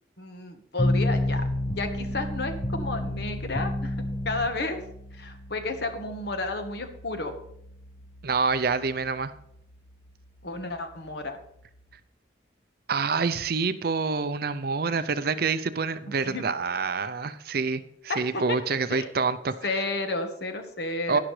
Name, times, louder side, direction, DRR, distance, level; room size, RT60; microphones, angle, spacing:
voice 1, 0.2-3.9 4.2-4.8 5.2-7.3 10.4-11.4 16.2-16.4 18.1-18.6 18.9-19.1 19.6-21.2, left 2 dB, 55° left, 7 dB, 1.3 m, -32 dB
sound 1, 0.8-11.9, left 1 dB, 25° left, 0.9 m, -32 dB
voice 2, 8.2-9.3 12.9-19.5 21.1-21.2, right 4 dB, 50° right, 13 dB, 0.5 m, -27 dB
12.0 x 10.5 x 3.3 m, 0.74 s
head